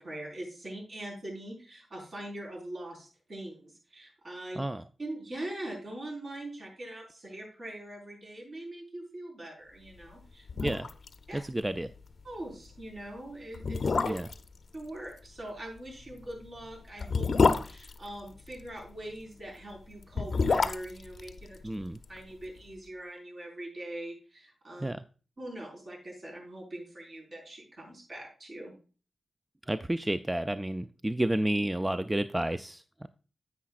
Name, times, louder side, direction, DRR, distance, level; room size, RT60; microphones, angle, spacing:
voice 1, 0.0-4.6 5.0-10.7 11.3-11.4 12.2-14.1 14.7-21.6 22.1-24.9 25.4-28.7, right 1 dB, 55° right, -1 dB, 4.8 m, -42 dB
sound 1, 10.1-10.2 10.5-11.2 11.4-11.5 11.9-12.1 12.8-12.9 13.5-14.5 16.0-18.7 19.9-22.2 22.4-22.5, left 4 dB, 60° left, 0.6 m, -28 dB
voice 2, 11.3-11.9 14.0-14.3 21.6-22.0 24.8-25.0 29.7-33.1, right 1 dB, 15° right, 11 dB, 0.4 m, -31 dB
9.9 x 8.5 x 2.4 m, 0.36 s
cardioid pair, 80°, 0 cm